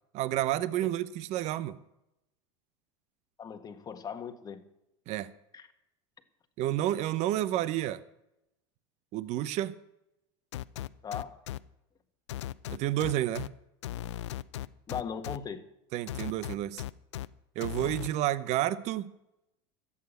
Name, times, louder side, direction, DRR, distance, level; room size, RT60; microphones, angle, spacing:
voice 1, 0.1-1.8 5.1-5.3 6.6-8.0 9.1-9.7 12.7-13.5 15.9-16.8 17.6-19.1, right 13 dB, 50° right, 0.8 m, -30 dB
voice 2, 3.4-4.6 5.5-5.7 11.0-11.3 14.9-15.6, left 7 dB, 25° left, 1.6 m, -38 dB
sound 1, 10.5-11.6 12.3-13.5 13.8-15.4 16.1-17.3 17.6-18.1, left 13 dB, 90° left, 0.5 m, -37 dB
14.0 x 8.4 x 8.4 m
supercardioid pair, 105°, 14 cm